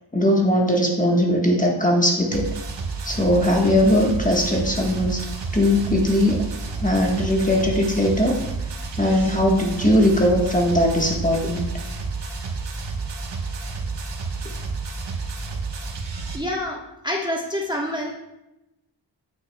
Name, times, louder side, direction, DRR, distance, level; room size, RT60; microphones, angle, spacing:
voice 1, 0.1-2.5 3.0-5.2 5.5-6.4 6.8-8.4 9.0-11.7, left 1 dB, 20° left, 0 dB, 1.3 m, -19 dB
sound 1, 2.3-16.4, right 4 dB, 75° right, 1.2 m, -30 dB
voice 2, 16.3-16.8 17.0-18.1, left 1 dB, 10° right, -2 dB, 1.2 m, -26 dB
8.9 x 8.0 x 2.3 m, 0.94 s
wide cardioid pair, 70°, 42 cm